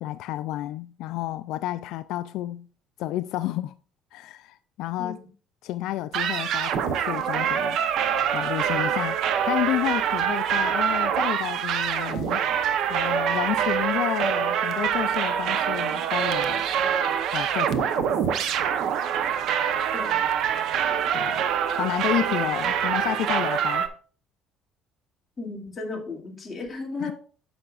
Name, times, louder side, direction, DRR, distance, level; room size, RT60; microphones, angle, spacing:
voice 1, 0.0-2.7 3.0-3.8 4.1-5.2 5.6-7.8 8.3-12.5 12.9-16.6 17.3-18.4 21.1-21.5 21.7-23.9 27.0-27.1, left 14 dB, 70° left, 0.3 m, -30 dB
sound 1, 6.1-23.9, right 8 dB, 60° right, 0.8 m, -25 dB
voice 2, 25.4-27.1, left 3 dB, 20° left, 2.4 m, -34 dB
9.9 x 6.9 x 2.4 m
cardioid pair, 140°, 0 cm